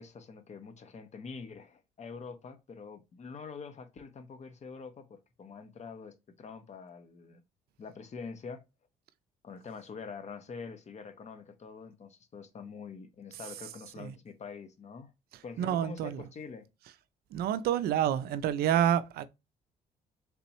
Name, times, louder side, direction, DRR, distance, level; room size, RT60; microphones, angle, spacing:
voice 1, 0.0-7.4 7.8-8.6 9.4-15.1 15.4-16.7, left 5 dB, 40° left, 0.8 m, -45 dB
voice 2, 15.6-16.2 17.3-19.3, right 10 dB, 65° right, 0.4 m, -28 dB
3.4 x 2.9 x 2.8 m
hypercardioid pair, 60°, 17 cm